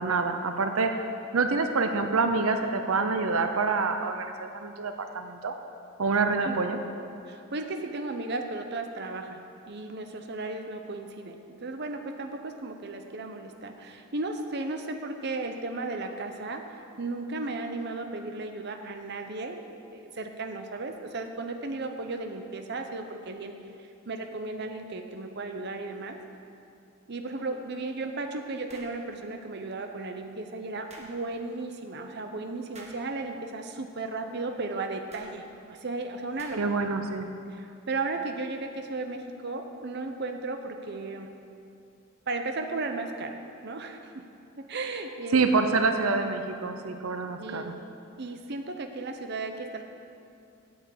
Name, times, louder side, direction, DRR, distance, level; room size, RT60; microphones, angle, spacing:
voice 1, 0.0-5.6 6.0-6.8 36.6-37.3 45.3-47.7, right 4 dB, 90° right, 7 dB, 0.7 m, -26 dB
voice 2, 7.3-23.6 24.1-26.2 27.1-36.6 37.5-41.3 42.3-44.2 44.7-45.4 45.7-45.8 47.4-47.8 48.2-49.8, right 3 dB, 50° right, 5 dB, 0.8 m, -35 dB
sound 1, 28.7-29.0 30.9-31.1 32.7-33.0 35.1-35.3 36.4-36.8, right 2 dB, 30° right, 1.4 m, -48 dB
9.2 x 7.2 x 8.5 m, 2.6 s
head